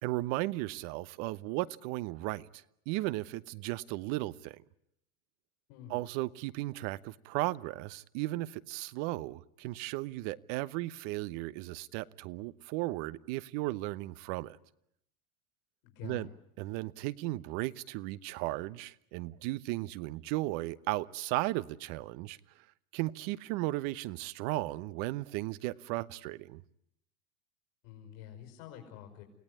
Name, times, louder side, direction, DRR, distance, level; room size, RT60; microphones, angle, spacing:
voice 1, 0.0-4.6 5.9-14.6 16.0-16.3 16.6-22.4 22.9-26.6, right 19 dB, 55° right, 1.1 m, -35 dB
voice 2, 16.0-16.3 27.8-29.2, left 10 dB, 65° left, 5.8 m, -47 dB
29.5 x 17.0 x 9.8 m
hypercardioid pair, 105°, 44 cm